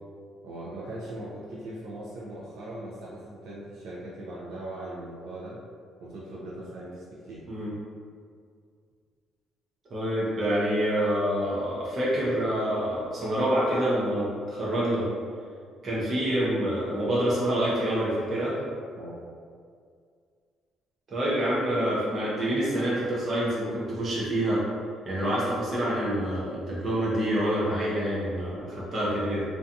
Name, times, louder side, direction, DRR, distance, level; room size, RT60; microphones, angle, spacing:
voice 1, 0.4-5.6 6.0-7.4 18.9-19.2, right 1 dB, 75° right, -7 dB, 0.5 m, -39 dB
voice 2, 9.9-15.1 15.8-18.6 21.1-24.6 25.0-29.4, right 1 dB, 35° right, -7 dB, 0.6 m, -27 dB
2.5 x 2.3 x 2.6 m, 2.1 s
cardioid pair, 170°, 0 cm